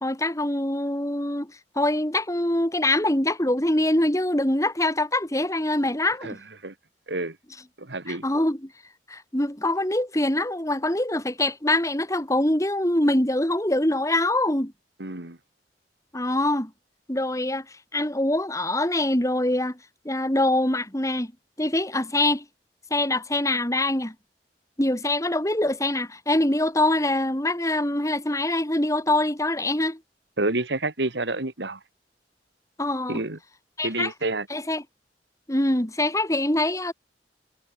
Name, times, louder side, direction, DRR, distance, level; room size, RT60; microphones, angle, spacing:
voice 1, 0.0-1.5 1.7-6.4 8.1-8.6 9.1-14.7 16.1-16.7 17.1-17.6 17.9-19.8 20.0-21.3 21.6-22.4 22.9-24.1 24.8-30.0 32.8-33.2 33.8-34.1 34.5-34.8 35.5-36.9, left 1 dB, 20° left, 2.9 m, -24 dB
voice 2, 7.8-8.2 15.0-15.4 30.4-31.8 33.1-33.4 33.8-34.5, right 2 dB, 80° right, 2.5 m, -28 dB
head